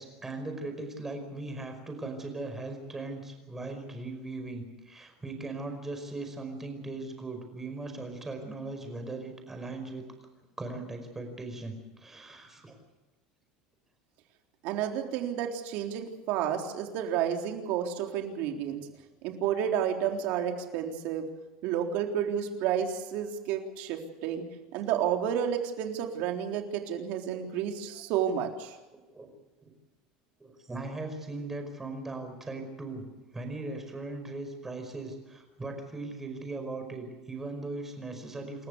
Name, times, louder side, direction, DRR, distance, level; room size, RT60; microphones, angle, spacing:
voice 1, 0.0-10.0 10.6-12.8 29.1-29.3 29.6-29.7 30.4-33.0 33.3-38.7, right 2 dB, 10° right, 5 dB, 5.2 m, -39 dB
voice 2, 14.6-18.9 19.2-21.3 21.6-24.4 24.7-28.7, right 9 dB, 60° right, 3 dB, 3.8 m, -31 dB
28.5 x 14.5 x 8.2 m, 1.1 s
cardioid pair, 150°, 3 cm